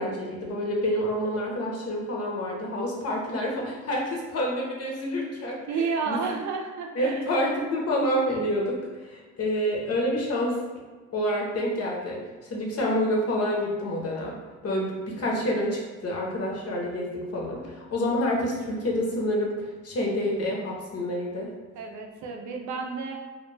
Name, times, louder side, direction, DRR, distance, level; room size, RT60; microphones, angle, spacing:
voice 1, 0.0-6.3 7.0-10.6 11.1-14.4 14.6-21.5, equal, 55° left, -2 dB, 0.8 m, -28 dB
voice 2, 5.7-7.2 21.8-23.2, right 5 dB, 75° right, 2 dB, 0.5 m, -31 dB
2.3 x 2.2 x 3.2 m, 1.3 s
cardioid pair, 90°, 30 cm